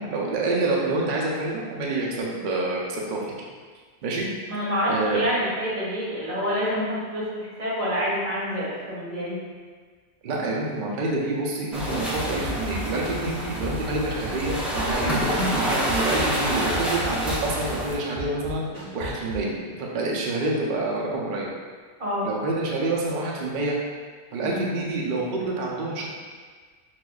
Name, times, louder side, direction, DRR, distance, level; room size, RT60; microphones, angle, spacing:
voice 1, 0.0-3.4 4.0-4.3 4.9-5.2 10.2-19.5 19.8-21.5 22.2-23.8 24.3-26.1, right 2 dB, 55° right, -3 dB, 0.6 m, -27 dB
voice 2, 4.5-9.4 15.3-15.5 22.0-22.3 24.4-24.6, equal, 85° right, -9 dB, 1.8 m, -27 dB
sound 1, 11.7-17.9, equal, ahead, 0.4 m, -28 dB
sound 2, 11.9-17.9 18.2-19.5, equal, 40° left, 0.7 m, -37 dB
5.9 x 2.4 x 2.3 m, 1.5 s
omnidirectional pair, 1.4 m